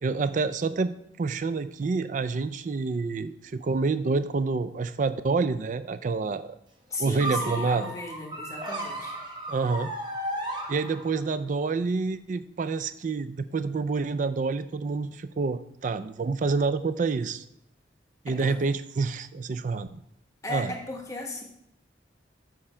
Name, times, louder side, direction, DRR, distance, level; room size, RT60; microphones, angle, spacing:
voice 1, 0.0-6.6 7.0-7.9 9.5-9.9 10.7-17.4 18.2-20.0 20.5-20.7, right 4 dB, 45° right, 13 dB, 0.4 m, -28 dB
voice 2, 6.9-9.1 18.3-18.6 20.4-21.4, left 2 dB, 15° left, 1 dB, 1.1 m, -36 dB
sound 1, 7.2-11.3, right 1 dB, 25° right, 1.1 m, -34 dB
6.8 x 6.2 x 4.3 m, 0.76 s
head